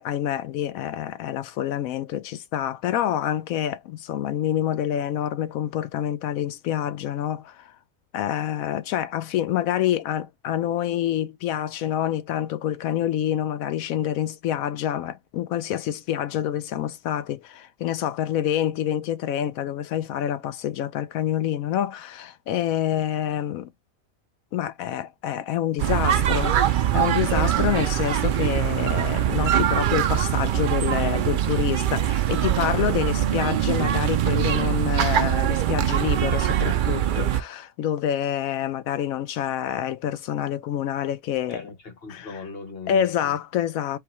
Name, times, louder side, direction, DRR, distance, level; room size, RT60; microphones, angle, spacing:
voice 1, 0.0-7.7 8.1-23.7 24.5-41.6 42.1-42.3 42.9-44.0, left 11 dB, 85° left, 1.1 m, -27 dB
sound 1, 25.8-37.4, right 11 dB, 85° right, 0.4 m, -23 dB
voice 2, 41.5-43.3, left 5 dB, 45° left, 1.3 m, -39 dB
3.9 x 2.7 x 4.2 m
omnidirectional pair, 1.4 m